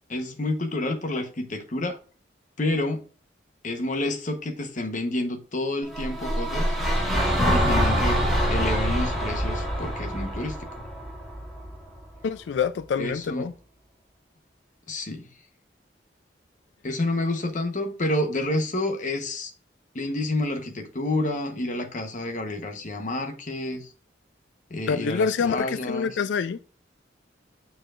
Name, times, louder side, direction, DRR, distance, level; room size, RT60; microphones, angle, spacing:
voice 1, 0.1-2.0 2.6-3.0 3.6-6.8 7.5-8.2 8.5-10.7 13.0-13.5 14.9-15.3 16.8-19.5 19.9-23.9 24.7-26.2, left 1 dB, 45° left, 1.0 m, -29 dB
sound 1, 5.9-12.0, equal, ahead, 1.6 m, -25 dB
voice 2, 12.2-13.5 24.9-26.6, left 6 dB, 75° left, 0.3 m, -26 dB
9.0 x 4.6 x 2.5 m
head